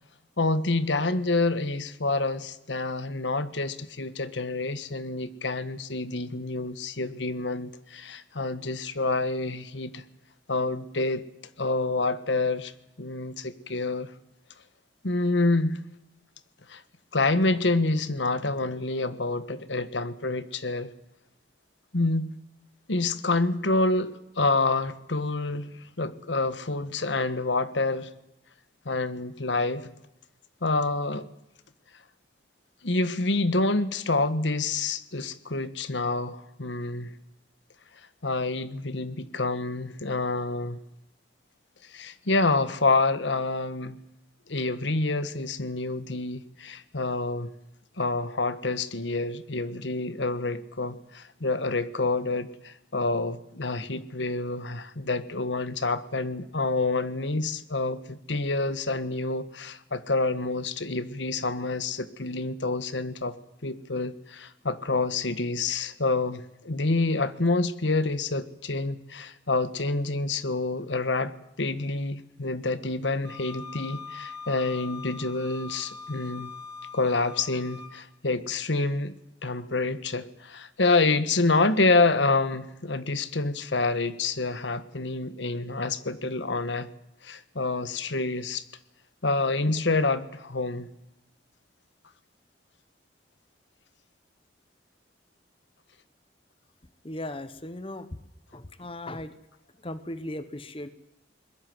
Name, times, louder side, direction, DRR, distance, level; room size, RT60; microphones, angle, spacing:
voice 1, 0.4-10.0 10.5-11.2 11.6-12.7 13.0-14.1 15.0-15.8 16.7-16.8 17.1-20.9 21.9-22.3 22.9-28.1 28.8-29.9 30.6-31.3 32.8-37.1 38.2-40.8 41.9-44.0 44.5-47.5 48.0-63.4 63.6-71.3 71.6-76.5 76.9-79.1 79.4-86.9 87.2-88.6 89.2-90.9, left 3 dB, 80° left, 1.4 m, -27 dB
Wind instrument woodwind instrument, 73.2-77.9, left 5 dB, 85° right, 3.4 m, -42 dB
voice 2, 97.0-98.1 98.5-99.3 99.8-100.9, left 1 dB, 30° left, 1.1 m, -37 dB
22.0 x 21.5 x 7.9 m
head